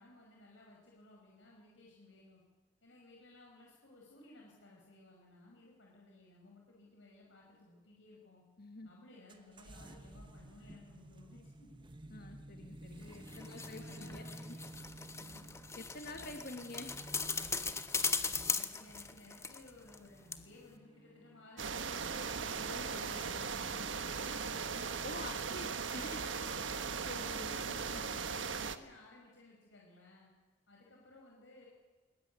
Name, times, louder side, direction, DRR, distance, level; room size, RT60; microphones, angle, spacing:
voice 1, 0.0-2.4 2.8-8.4 8.8-11.8 13.5-14.6 15.2-15.5 18.1-22.7 23.7-25.8 28.1-30.3 30.7-31.7, left 2 dB, 80° left, -2 dB, 5.5 m, -58 dB
voice 2, 8.6-8.9 12.1-14.6 15.8-17.0 22.6-23.9 25.0-26.7 27.0-28.2, left 2 dB, 55° left, 5 dB, 1.6 m, -48 dB
sound 1, 9.3-21.5, right 1 dB, 25° right, 1.3 m, -53 dB
sound 2, 13.0-20.0 20.3-20.4, left 4 dB, 15° left, 1.2 m, -39 dB
sound 3, 21.6-28.8, right 5 dB, 80° right, 1.4 m, -38 dB
21.0 x 20.5 x 9.5 m, 1.3 s
head